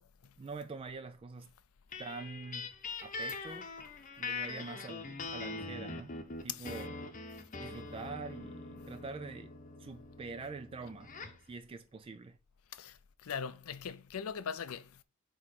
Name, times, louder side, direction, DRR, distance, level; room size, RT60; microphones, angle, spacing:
voice 1, 0.4-1.5 2.0-2.7 3.0-3.7 4.2-6.2 6.4-6.9 7.6-9.5 9.8-11.1 11.4-12.4, right 4 dB, 25° right, 0.3 m, -45 dB
sound 1, 1.9-11.4, left 3 dB, 35° left, 0.8 m, -43 dB
voice 2, 12.7-15.0, left 7 dB, 80° left, 0.5 m, -40 dB
7.8 x 3.1 x 5.8 m
head